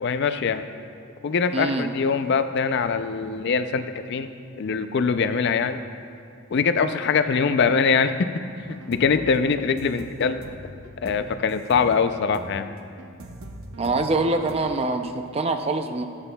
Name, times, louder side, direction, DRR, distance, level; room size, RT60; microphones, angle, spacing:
voice 1, 0.0-0.7 1.2-4.3 4.6-5.8 6.5-8.2 8.9-10.4 11.0-12.7, left 5 dB, 55° left, 10 dB, 0.4 m, -23 dB
voice 2, 1.5-1.9 13.8-16.0, right 2 dB, 30° right, 6 dB, 0.5 m, -24 dB
sound 1, 8.6-14.6, right 1 dB, 80° right, 0.7 m, -42 dB
16.0 x 8.8 x 2.2 m, 2.5 s
head